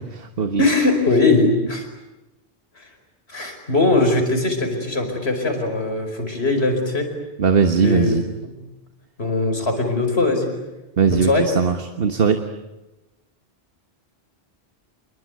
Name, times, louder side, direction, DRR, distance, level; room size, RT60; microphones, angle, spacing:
voice 1, 0.0-0.6 7.4-8.2 11.0-12.4, right 5 dB, 65° right, 7 dB, 1.5 m, -19 dB
voice 2, 0.6-1.9 3.3-7.1 7.8-8.6 9.2-10.5 11.1-11.5, left 2 dB, 80° left, 5 dB, 5.3 m, -20 dB
27.5 x 22.5 x 9.5 m, 1.0 s
omnidirectional pair, 1.1 m